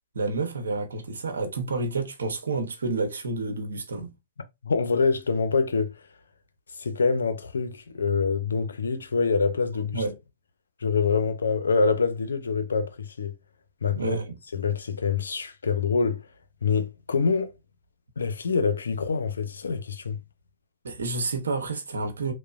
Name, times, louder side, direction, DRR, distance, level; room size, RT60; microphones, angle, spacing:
voice 1, 0.1-4.1 9.9-10.1 14.0-14.3 20.8-22.3, right 3 dB, 85° right, 0.7 m, -29 dB
voice 2, 4.6-6.1 6.7-10.0 10.8-13.4 13.8-14.2 14.5-16.3 16.6-17.5 18.2-20.2, left 5 dB, 90° left, 0.6 m, -25 dB
2.9 x 2.1 x 2.4 m
hypercardioid pair, 130°, 0 cm